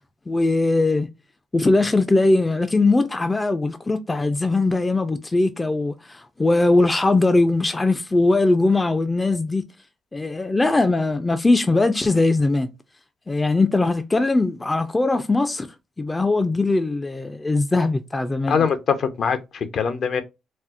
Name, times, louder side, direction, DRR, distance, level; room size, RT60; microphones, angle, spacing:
voice 1, 0.3-1.1 1.5-9.6 10.1-12.7 13.3-15.7 16.0-18.7, left 2 dB, 20° left, 0.4 m, -20 dB
voice 2, 18.5-20.2, left 6 dB, 60° left, 0.6 m, -22 dB
4.2 x 2.0 x 2.4 m
cardioid pair, 90°, 0 cm